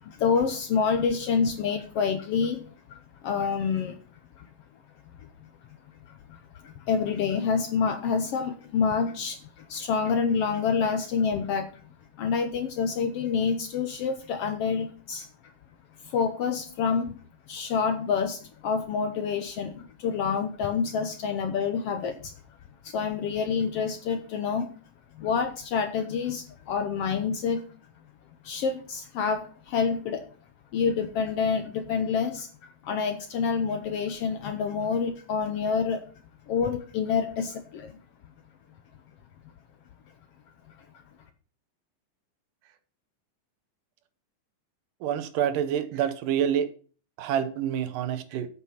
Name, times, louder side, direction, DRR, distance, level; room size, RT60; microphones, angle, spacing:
voice 1, 0.0-2.6 2.9-3.0 3.2-3.9 4.4-4.5 6.3-6.4 6.6-11.7 12.2-15.3 16.0-17.1 17.5-22.3 22.8-24.7 25.2-27.6 28.4-30.2 30.7-36.0 36.5-37.9, left 6 dB, 75° left, 8 dB, 1.4 m, -27 dB
voice 2, 45.0-46.7 47.2-48.5, right 9 dB, 85° right, 12 dB, 2.6 m, -27 dB
8.3 x 7.5 x 5.7 m, 0.41 s
omnidirectional pair, 3.7 m